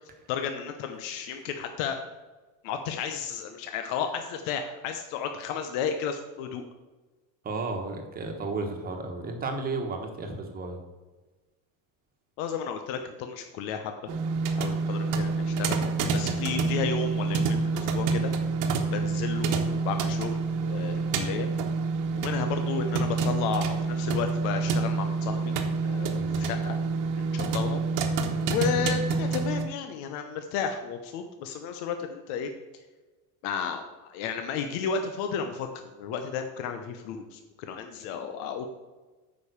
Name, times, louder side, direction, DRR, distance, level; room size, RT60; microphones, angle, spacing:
voice 1, 0.3-2.0 2.6-6.6 12.4-13.9 14.5-15.8 16.1-18.3 18.9-21.5 22.1-25.5 25.8-26.8 27.2-27.8 28.5-32.5 33.4-38.7, left 6 dB, 80° left, 6 dB, 1.0 m, -33 dB
voice 2, 7.4-10.8 18.9-19.1 26.1-26.5 28.6-28.9, right 3 dB, 25° right, 4 dB, 1.3 m, -34 dB
sound 1, 14.1-29.6, right 4 dB, 55° right, 1.2 m, -27 dB
9.0 x 5.4 x 6.7 m, 1.2 s
cardioid pair, 170°, 38 cm